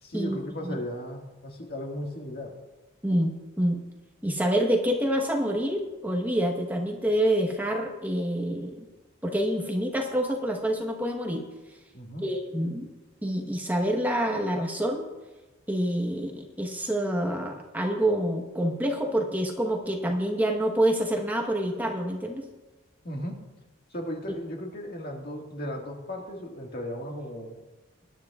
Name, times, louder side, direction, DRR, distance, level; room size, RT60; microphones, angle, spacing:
voice 1, 0.0-2.5 11.9-12.3 23.0-23.4 23.9-27.6, equal, 50° left, 1 dB, 1.8 m, -36 dB
voice 2, 3.0-3.8 4.2-8.9 9.2-11.4 12.2-12.9 13.2-15.1 15.7-22.5, right 1 dB, 10° right, 1 dB, 1.1 m, -27 dB
20.5 x 10.0 x 2.4 m, 1.1 s
head